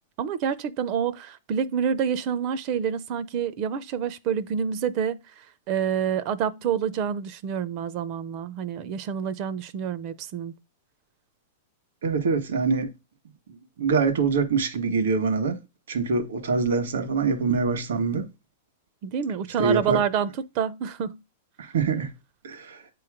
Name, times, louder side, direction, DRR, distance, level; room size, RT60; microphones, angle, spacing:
voice 1, 0.2-5.2 5.7-10.6 19.0-21.2, right 7 dB, 45° right, 0.5 m, -27 dB
voice 2, 12.0-12.9 13.8-15.6 15.9-18.3 19.6-20.0 21.6-22.1 22.4-22.8, right 4 dB, 85° right, 1.4 m, -24 dB
8.2 x 3.1 x 4.9 m
hypercardioid pair, 135°, 0 cm